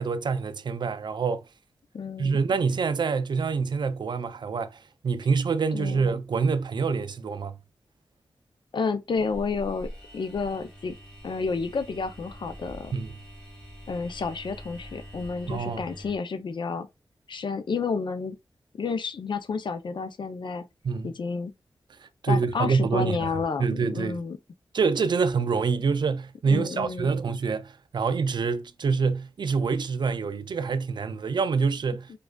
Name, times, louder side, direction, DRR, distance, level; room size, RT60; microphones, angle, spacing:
voice 1, 0.0-1.4 2.2-4.8 5.0-7.6 12.9-13.1 15.5-15.8 20.8-21.1 22.2-23.3 23.6-24.2 24.7-32.1, right 5 dB, 60° right, 0.4 m, -26 dB
voice 2, 1.9-2.4 5.7-6.0 8.7-9.9 10.1-11.0 11.2-12.9 13.9-16.9 17.3-18.4 18.8-20.6 21.0-21.5 22.3-24.4 26.4-27.2, left 4 dB, 65° left, 0.5 m, -30 dB
sound 1, 9.2-16.2, equal, 10° left, 1.9 m, -44 dB
4.7 x 2.3 x 2.2 m
wide cardioid pair, 100°, 9 cm